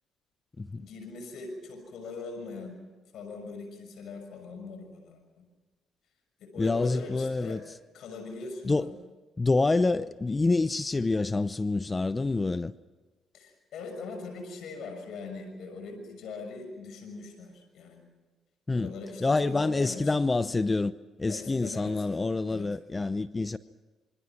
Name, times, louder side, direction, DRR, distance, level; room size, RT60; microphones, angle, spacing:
voice 1, 0.7-2.8 3.1-5.5 6.4-7.6 7.9-8.9 13.3-18.0 18.7-20.2 21.3-22.0 22.5-22.7, left 3 dB, 75° left, 6.5 m, -41 dB
voice 2, 6.6-7.6 8.6-8.9 9.4-12.7 18.7-18.9 19.2-23.6, left 3 dB, 25° left, 0.7 m, -27 dB
26.5 x 26.0 x 6.0 m
cardioid pair, 90°, 0 cm